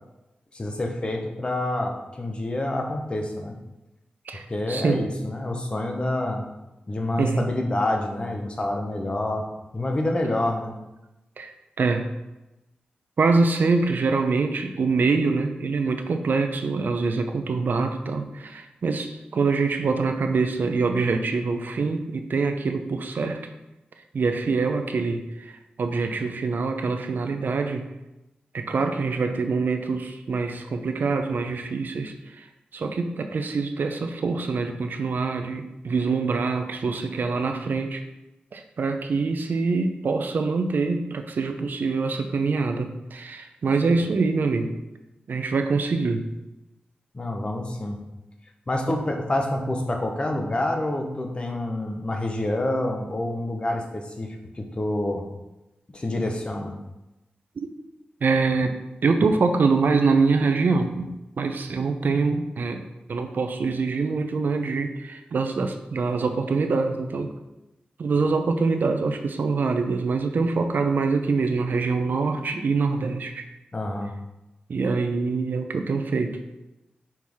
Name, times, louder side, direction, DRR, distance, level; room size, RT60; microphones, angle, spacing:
voice 1, 0.5-3.5 4.3-6.4 6.9-9.5 9.7-10.7 47.1-48.0 48.7-55.3 55.9-56.7 73.7-74.1, left 1 dB, 35° left, 2 dB, 1.0 m, -27 dB
voice 2, 4.3-5.1 7.2-7.5 11.4-12.1 13.2-23.4 24.1-27.9 28.5-32.5 32.7-38.0 38.5-44.7 45.3-46.3 57.6-57.7 58.2-61.1 61.4-62.8 63.1-67.3 68.0-73.4 74.7-76.4, right 4 dB, 70° right, 6 dB, 0.6 m, -25 dB
5.8 x 4.7 x 3.5 m, 0.96 s
wide cardioid pair, 80°, 3 cm